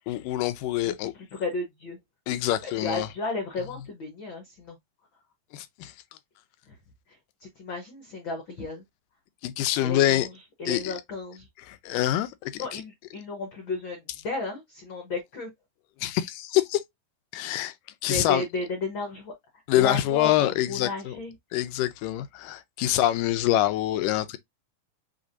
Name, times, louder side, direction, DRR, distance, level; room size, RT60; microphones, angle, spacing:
voice 1, 0.1-1.1 2.3-3.1 5.5-6.0 9.4-10.3 10.7-10.9 11.6-12.8 16.0-16.8 17.3-17.7 18.0-18.4 19.7-21.2 21.5-24.4, left 13 dB, 90° left, 2.3 m, -25 dB
voice 2, 1.3-2.0 2.6-4.8 6.7-6.8 7.1-8.8 9.8-10.3 10.6-11.5 12.6-15.5 18.1-19.3 19.7-20.3 20.7-21.3, left 3 dB, 65° left, 1.2 m, -33 dB
6.3 x 2.9 x 2.6 m
omnidirectional pair, 3.9 m